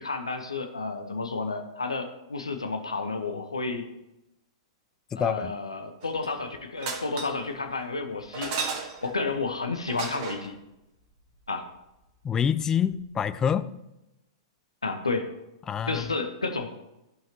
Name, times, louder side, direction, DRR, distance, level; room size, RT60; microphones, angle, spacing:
voice 1, 0.0-3.9 5.2-8.6 9.0-10.5 11.5-11.7 14.8-15.3 15.9-16.9, left 3 dB, 85° left, 6 dB, 0.9 m, -31 dB
voice 2, 5.1-5.5 12.2-13.7 15.7-16.0, left 8 dB, 20° left, 14 dB, 0.5 m, -26 dB
sound 1, 6.0-6.4 6.8-7.5 8.3-9.2 9.9-10.5 12.7-12.8 12.9-13.0, right 5 dB, 45° right, 1.6 m, -34 dB
14.0 x 5.7 x 3.0 m, 0.92 s
figure-of-eight pair, 105°, 3 cm